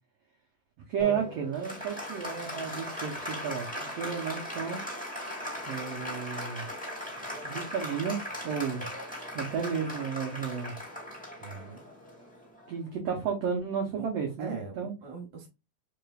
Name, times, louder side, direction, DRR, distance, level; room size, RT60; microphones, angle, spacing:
voice 1, 0.9-4.8 5.6-6.6 7.4-8.2 8.4-8.8 9.3-10.7 12.7-14.9, right 7 dB, 90° right, 0 dB, 1.4 m, -32 dB
Applause, 1.0-12.9, equal, 5° left, 0.6 m, -39 dB
voice 2, 11.4-11.8 14.0-14.1 14.4-15.5, right 4 dB, 65° right, 1 dB, 2.1 m, -42 dB
5.0 x 3.3 x 2.3 m, 0.26 s
omnidirectional pair, 3.9 m